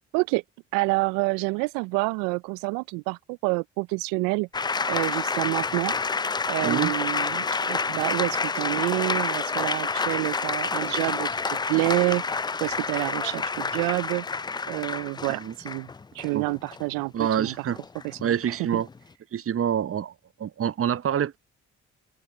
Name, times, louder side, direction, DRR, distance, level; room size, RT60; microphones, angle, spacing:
voice 1, 0.7-5.9 6.5-14.4 14.7-15.9 16.1-17.7 18.0-18.8, right 28 dB, 80° right, 0.5 m, -28 dB
sound 1, 4.5-19.0, left 4 dB, 15° left, 0.3 m, -29 dB
voice 2, 6.6-6.9 15.3-15.5 16.3-16.5 17.1-17.8 18.2-18.9 19.3-20.1 20.4-21.4, right 9 dB, 45° right, 0.8 m, -26 dB
hypercardioid pair, 40°, 33 cm